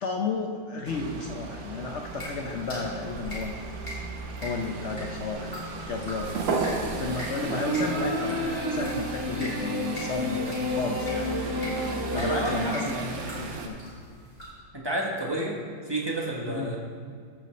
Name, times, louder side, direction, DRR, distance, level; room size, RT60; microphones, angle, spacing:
voice 1, 0.0-3.7 4.4-6.4 6.9-11.3 12.1-13.8 16.5-16.7, left 4 dB, 70° left, 2 dB, 0.6 m, -33 dB
sound 1, 0.9-13.7, right 4 dB, 80° right, 1.6 m, -35 dB
sound 2, 2.0-14.5, equal, 20° left, 2.7 m, -43 dB
sound 3, 7.3-12.7, equal, 60° right, 3.1 m, -30 dB
voice 2, 12.1-13.0 14.7-15.6 15.9-16.8, right 1 dB, 20° right, -2 dB, 0.7 m, -30 dB
13.5 x 6.8 x 3.2 m, 2.1 s
omnidirectional pair, 2.0 m